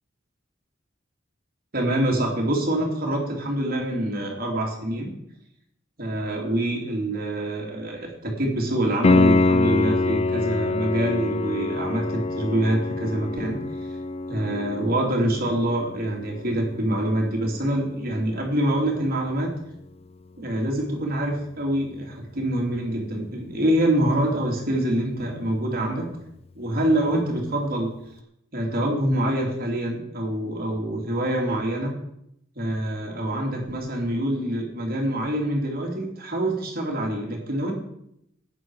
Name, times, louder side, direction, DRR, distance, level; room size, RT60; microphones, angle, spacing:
voice 1, 1.7-5.1 6.0-13.6 14.3-19.5 20.4-26.0 26.5-27.9 28.5-31.9 32.6-37.7, right 1 dB, 50° right, 0 dB, 3.0 m, -25 dB
Piano, 9.0-19.7 23.0-23.1, left 3 dB, 30° left, 0.4 m, -26 dB
15.0 x 9.7 x 4.8 m, 0.76 s
head